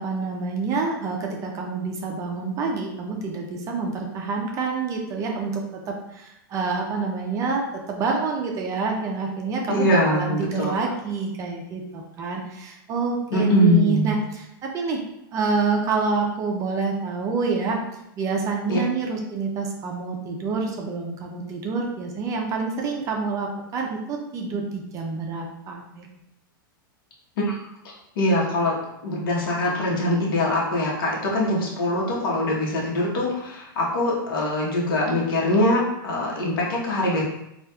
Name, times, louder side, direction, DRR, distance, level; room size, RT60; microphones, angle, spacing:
voice 1, 0.0-15.0 15.3-17.8 18.2-26.1, right 4 dB, 25° right, 0 dB, 0.5 m, -27 dB
voice 2, 9.7-10.7 13.3-14.2 18.7-18.8 27.4-27.5 27.8-28.7 29.0-37.2, left 1 dB, 75° left, -3 dB, 1.0 m, -23 dB
4.1 x 2.4 x 2.3 m, 0.83 s
supercardioid pair, 140°, 12 cm